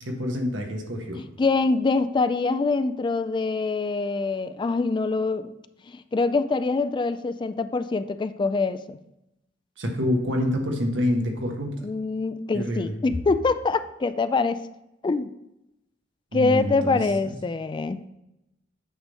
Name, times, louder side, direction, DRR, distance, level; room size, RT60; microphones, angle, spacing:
voice 1, 0.0-1.2 9.8-11.7 12.5-12.9 16.3-17.0, left 1 dB, 80° right, 2 dB, 1.4 m, -27 dB
voice 2, 1.1-5.5 5.9-9.0 11.8-14.6 15.0-15.3 16.3-18.0, left 3 dB, 25° left, 12 dB, 0.3 m, -24 dB
8.8 x 3.5 x 5.4 m, 0.88 s
head